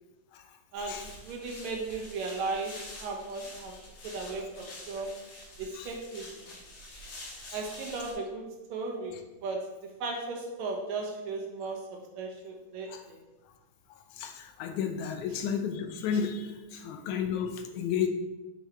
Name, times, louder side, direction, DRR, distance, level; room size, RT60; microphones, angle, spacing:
voice 1, 0.7-3.8 4.0-5.2 5.6-6.6 7.5-13.2, right 3 dB, 75° right, 1 dB, 2.2 m, -36 dB
sound 1, 0.8-8.1, left 1 dB, 55° left, 2.1 m, -47 dB
voice 2, 13.9-18.1, left 7 dB, 90° left, 6 dB, 2.2 m, -32 dB
6.8 x 6.0 x 3.3 m, 1.1 s
omnidirectional pair, 3.4 m